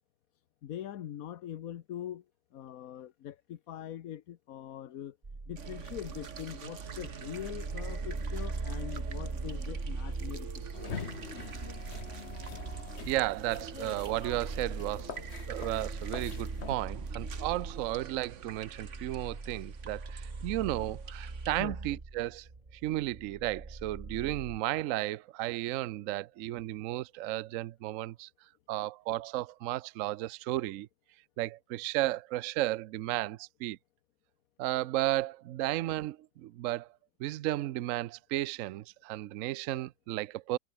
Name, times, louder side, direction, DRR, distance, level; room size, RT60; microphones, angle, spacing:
voice 1, 0.6-2.2 2.5-5.2 5.5-10.6 11.4-11.5 21.6-21.8, left 11 dB, 60° left, 1.2 m, -42 dB
sound 1, 5.2-24.6, right 3 dB, 25° right, 1.7 m, -41 dB
sound 2, 5.6-21.6, right 6 dB, 45° right, 1.6 m, -45 dB
sound 3, 10.7-16.7, left 6 dB, 45° left, 1.5 m, -44 dB
voice 2, 13.0-15.2 15.5-22.5 22.8-28.3 28.7-30.9 31.4-33.8 34.6-36.9 37.2-40.6, right 15 dB, 70° right, 0.8 m, -34 dB
omnidirectional pair, 1.8 m